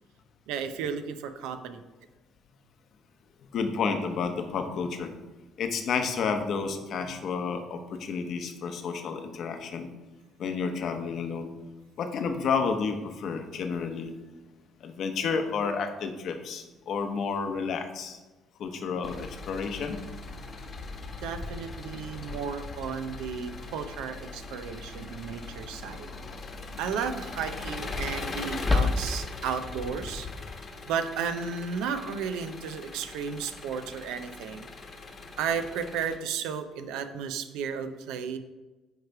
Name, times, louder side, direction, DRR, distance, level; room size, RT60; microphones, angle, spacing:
voice 1, 0.5-1.8 21.2-26.1 26.8-30.3 30.9-34.7 35.4-38.4, right 6 dB, 85° right, 9 dB, 0.6 m, -33 dB
voice 2, 3.5-5.1 5.6-9.9 10.4-11.5 12.0-14.1 14.8-18.2 18.6-20.0, left 5 dB, 60° left, 6 dB, 0.9 m, -31 dB
Engine, 19.0-36.2, left 3 dB, 40° left, 1.1 m, -40 dB
sound 1, 24.0-24.1 25.9-26.3 26.6-26.7 28.5-29.4, left 3 dB, 15° left, 0.9 m, -27 dB
9.3 x 3.2 x 4.7 m, 1.2 s
supercardioid pair, 85°, 0 cm